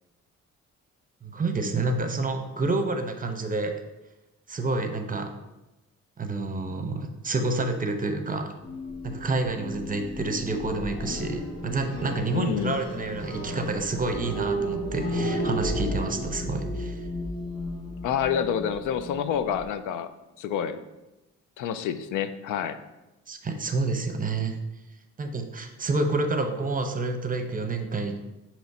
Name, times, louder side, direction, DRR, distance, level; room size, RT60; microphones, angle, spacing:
voice 1, 1.2-3.7 4.5-5.3 6.2-8.5 9.0-17.0 23.3-24.6 25.2-28.2, right 3 dB, 30° right, 6 dB, 0.7 m, -28 dB
sound 1, 8.6-19.6, equal, 50° left, 1.5 m, -33 dB
voice 2, 12.3-12.8 18.0-20.1 20.4-20.8 21.6-22.8, left 8 dB, 85° left, 12 dB, 0.5 m, -28 dB
5.8 x 3.0 x 5.4 m, 1.0 s
cardioid pair, 90°, 30 cm